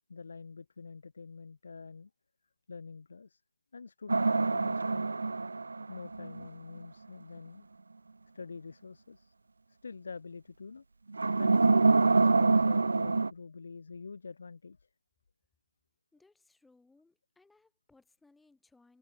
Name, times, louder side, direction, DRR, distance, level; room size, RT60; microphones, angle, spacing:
voice 1, 0.1-2.1 2.7-3.4 3.7-5.1 5.9-7.7 8.3-9.3 9.7-10.8 11.4-11.8 12.1-14.9, left 4 dB, 55° left, 1.6 m, -46 dB
sound 1, 4.1-6.5 11.1-13.3, right 3 dB, 85° right, 0.5 m, -25 dB
voice 2, 16.1-19.0, left 3 dB, ahead, 7.3 m, -65 dB
hypercardioid pair, 175°, 0 cm